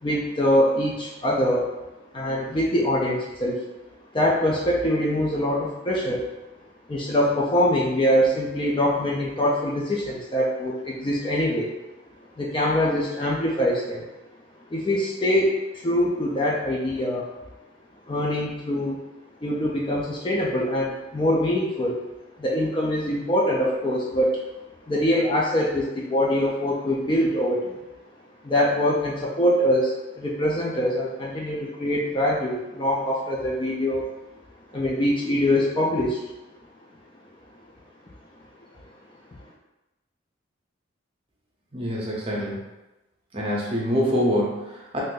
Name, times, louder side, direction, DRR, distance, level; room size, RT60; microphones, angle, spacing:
voice 1, 0.0-1.7 2.1-3.6 4.1-6.2 6.9-11.7 12.4-14.0 14.7-17.3 18.1-19.0 19.4-22.0 22.4-24.4 24.9-27.8 28.4-34.1 34.7-36.2, equal, 25° left, -3 dB, 0.4 m, -23 dB
voice 2, 41.7-42.6 43.3-45.0, equal, 30° right, -3 dB, 0.6 m, -25 dB
2.6 x 2.5 x 3.7 m, 1.0 s
head